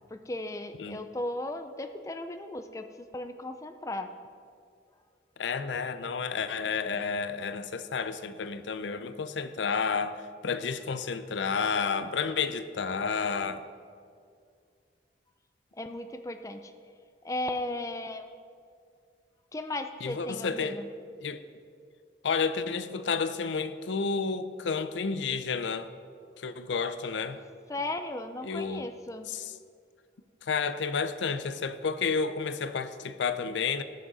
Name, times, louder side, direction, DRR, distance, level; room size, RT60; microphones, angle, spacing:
voice 1, 0.1-2.9 3.1-4.1 15.7-16.7 17.2-18.2 19.5-20.9 27.7-29.3, left 1 dB, 15° left, 0.4 m, -36 dB
voice 2, 5.4-13.7 20.0-20.8 21.2-21.4 22.2-25.9 26.4-27.4 28.4-28.9 29.3-29.5 30.4-33.8, left 5 dB, 85° left, 0.5 m, -31 dB
18.0 x 6.2 x 4.1 m
head